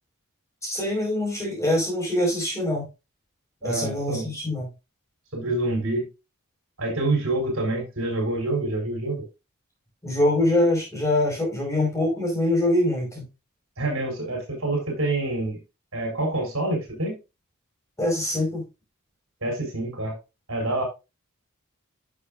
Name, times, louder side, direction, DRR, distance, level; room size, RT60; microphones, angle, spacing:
voice 1, 0.6-2.9 3.6-4.7 10.0-13.2 18.0-18.6, left 1 dB, 15° left, -1 dB, 4.8 m, -24 dB
voice 2, 3.6-4.3 5.3-6.1 6.8-9.2 13.8-15.6 15.9-17.2 19.4-20.1 20.5-20.8, right 2 dB, 65° right, 2 dB, 4.9 m, -27 dB
11.5 x 6.7 x 2.5 m, 0.26 s
head